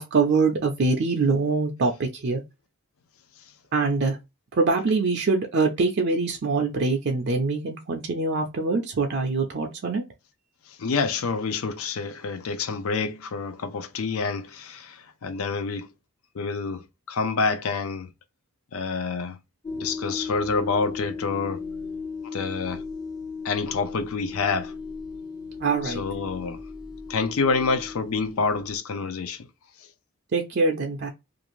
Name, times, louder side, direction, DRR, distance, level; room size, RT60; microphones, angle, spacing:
voice 1, 0.0-2.4 3.7-4.2 4.6-10.0 25.6-26.0 30.3-31.1, right 3 dB, 50° right, 0.4 m, -24 dB
voice 2, 10.8-15.9 16.4-16.8 17.1-18.1 18.7-19.4 19.7-21.6 22.2-22.8 23.4-24.7 25.8-26.6 27.1-29.4, left 4 dB, 70° left, 0.5 m, -27 dB
sound 1, 19.6-28.8, left 4 dB, 15° left, 0.5 m, -36 dB
2.5 x 2.4 x 3.0 m
head